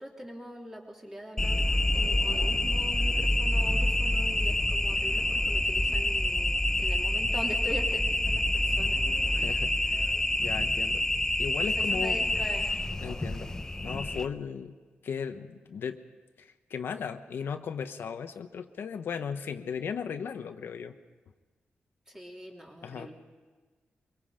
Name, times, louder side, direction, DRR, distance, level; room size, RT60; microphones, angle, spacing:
voice 1, 0.0-1.6 1.9-9.0 11.6-12.7 22.1-23.1, equal, 10° right, -1 dB, 3.3 m, -42 dB
sound 1, 1.4-14.3, left 1 dB, 15° left, 0.8 m, -27 dB
voice 2, 9.3-10.1 10.4-11.0 11.4-12.2 13.0-13.5 13.8-14.7 15.0-16.0 16.4-20.9 22.8-23.1, left 6 dB, 80° left, 7 dB, 1.1 m, -36 dB
24.0 x 23.5 x 5.1 m, 1.3 s
wide cardioid pair, 160°, 4 cm